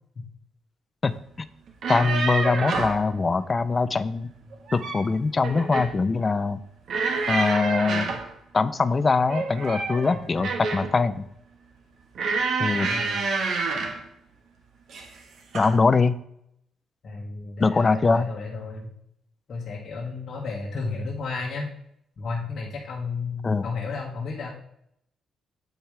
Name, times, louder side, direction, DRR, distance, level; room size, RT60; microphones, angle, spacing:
sound 1, 1.7-3.0 4.5-5.1 5.4-6.0 6.9-8.3 9.3-11.0 12.2-14.0 14.9-15.2 15.5-15.8, right 4 dB, 65° right, 1.4 m, -28 dB
voice 1, 1.9-4.3 4.7-6.6 7.3-8.1 8.5-11.3 12.6-12.9 15.5-16.2 17.6-18.3 23.4-23.7, left 4 dB, 25° left, 13 dB, 0.5 m, -22 dB
voice 2, 12.6-13.3 17.0-18.9 19.5-21.7 22.2-24.5, left 4 dB, 50° left, -4 dB, 1.9 m, -33 dB
8.9 x 7.8 x 3.4 m, 0.73 s
cardioid pair, 120°, 0 cm